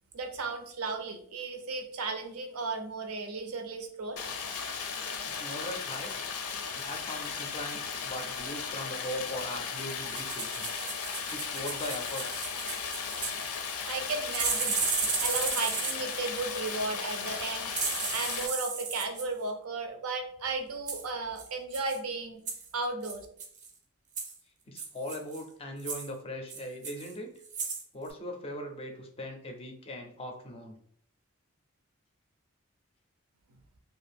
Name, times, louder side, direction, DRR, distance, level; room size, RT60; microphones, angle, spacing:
voice 1, 0.1-4.2 13.9-14.8 15.2-17.7 18.1-22.4 22.7-23.3, right 3 dB, 85° right, 5 dB, 0.6 m, -35 dB
Stream, 4.2-18.5, left 6 dB, 85° left, 0.5 m, -36 dB
voice 2, 5.2-6.1 6.7-10.7 11.3-12.4 24.7-27.3 27.9-30.8, left 1 dB, 25° left, 4 dB, 0.4 m, -40 dB
sound 1, 10.1-13.4 14.3-16.2 17.7-19.3 20.9-21.1 21.4-21.5 21.7-22.0 22.5-22.7 23.0-23.7 24.2-24.3 24.8-25.4 25.8-26.1 26.5-27.1 27.4-27.8 28.1-28.2, right 5 dB, 35° right, 0.4 m, -34 dB
2.5 x 2.4 x 3.3 m, 0.63 s
head